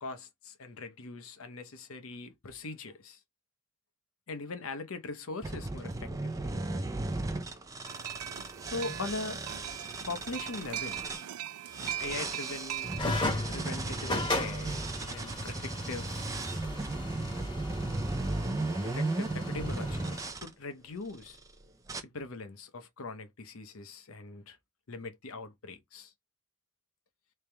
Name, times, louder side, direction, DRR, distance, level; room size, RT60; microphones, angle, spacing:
voice 1, 0.0-3.2 4.3-6.3 8.6-9.4 10.1-11.1 12.0-12.9 13.5-16.3 18.8-21.4 22.1-24.6 24.9-26.1, left 3 dB, 70° left, 0.8 m, -41 dB
sound 1, 5.4-11.3 11.7-20.5 21.1-21.5 21.9-22.0, right 2 dB, 15° right, 0.4 m, -36 dB
sound 2, 7.9-13.0, right 12 dB, 85° right, 0.4 m, -40 dB
sound 3, 13.0-20.3, left 2 dB, 20° left, 1.0 m, -37 dB
3.3 x 2.9 x 3.3 m
head